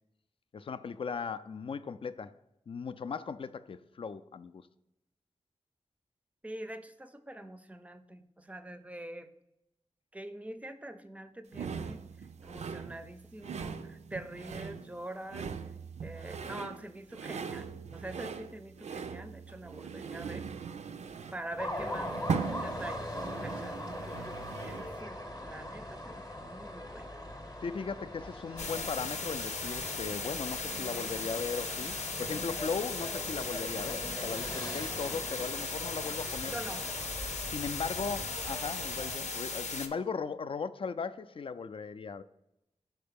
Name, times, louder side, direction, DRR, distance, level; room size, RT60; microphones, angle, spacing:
voice 1, 0.5-2.3 2.7-4.7 27.6-36.6 37.5-42.2, left 5 dB, 50° left, 12 dB, 0.3 m, -37 dB
voice 2, 6.4-9.3 10.1-15.5 16.0-20.5 21.3-22.1 22.6-23.9 24.6-27.2 36.5-37.2, right 1 dB, 10° right, 10 dB, 0.5 m, -45 dB
sound 1, 11.5-25.0, right 6 dB, 75° right, 0.4 m, -40 dB
sound 2, 21.6-39.2, left 1 dB, 30° left, 0.8 m, -41 dB
sound 3, 28.6-39.9, left 4 dB, 85° left, 0.7 m, -37 dB
5.6 x 4.3 x 5.2 m, 0.87 s
wide cardioid pair, 110°, 12 cm